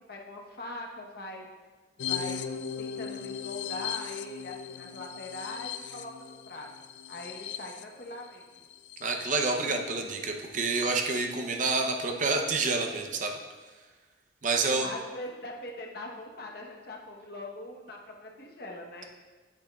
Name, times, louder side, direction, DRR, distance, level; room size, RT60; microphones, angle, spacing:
voice 1, 0.0-1.5 2.0-6.7 7.1-8.7 14.8-19.1, left 2 dB, 60° left, 0 dB, 1.0 m, -42 dB
sound 1, 2.0-9.6 10.1-10.2 10.4-10.9, left 7 dB, 80° left, 0.4 m, -38 dB
voice 2, 9.0-13.3 14.4-14.9, right 3 dB, 45° right, 3 dB, 0.7 m, -28 dB
8.7 x 8.1 x 2.3 m, 1.3 s
head